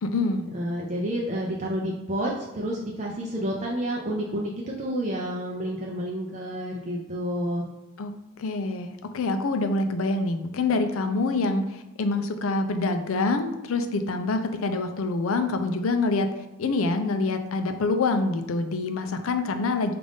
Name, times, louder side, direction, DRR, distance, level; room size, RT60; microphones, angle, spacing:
voice 1, 0.0-0.5 8.0-8.1 8.4-16.3 16.6-20.0, left 3 dB, 85° left, 7 dB, 0.5 m, -26 dB
voice 2, 0.5-7.7, equal, 35° right, -3 dB, 0.5 m, -30 dB
5.2 x 2.5 x 3.5 m, 0.99 s
head